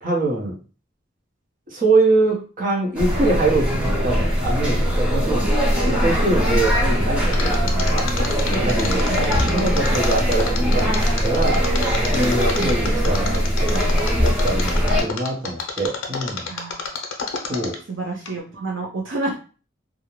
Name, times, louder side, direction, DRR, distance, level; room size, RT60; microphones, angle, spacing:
voice 1, 0.0-0.5 1.7-5.5 5.8-8.0 8.6-11.9 12.1-13.8 14.1-16.5 17.5-17.8, right 2 dB, 40° right, -3 dB, 0.7 m, -23 dB
sound 1, 2.9-15.0, equal, 5° right, 0.5 m, -21 dB
Mechanisms, 7.3-17.9 18.2-18.3, left 5 dB, 90° left, 0.5 m, -29 dB
voice 2, 9.1-9.7 12.6-12.9 16.5-16.9 17.9-19.4, right 3 dB, 70° right, -2 dB, 0.6 m, -30 dB
2.4 x 2.1 x 2.9 m, 0.36 s
head